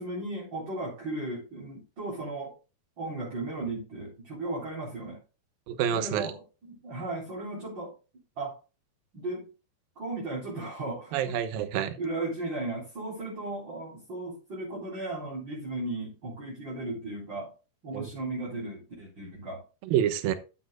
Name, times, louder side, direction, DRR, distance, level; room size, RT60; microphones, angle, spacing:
voice 1, 0.0-2.5 3.0-5.2 5.9-7.9 8.4-8.5 9.1-9.5 10.0-11.4 12.0-17.5 17.8-19.6, right 2 dB, 30° right, 4.2 m, -36 dB
voice 2, 5.7-6.3 11.1-12.0 17.9-18.1 19.8-20.3, right 10 dB, 70° right, 2.7 m, -27 dB
13.0 x 9.3 x 2.3 m
omnidirectional pair, 4.6 m